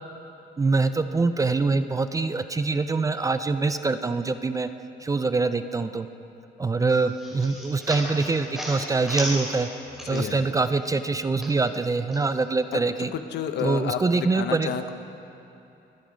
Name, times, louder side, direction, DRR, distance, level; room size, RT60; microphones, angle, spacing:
voice 1, 0.6-4.7 5.0-6.1 6.6-9.7 10.1-13.1 13.6-14.7, right 3 dB, 20° right, 11 dB, 0.4 m, -24 dB
sound 1, 6.9-10.5 10.8-12.2, equal, ahead, 3.8 m, -35 dB
voice 2, 10.1-10.5 12.7-12.8 13.1-14.9, left 8 dB, 70° left, 9 dB, 0.9 m, -30 dB
25.0 x 10.0 x 5.1 m, 2.8 s
cardioid pair, 155°, 18 cm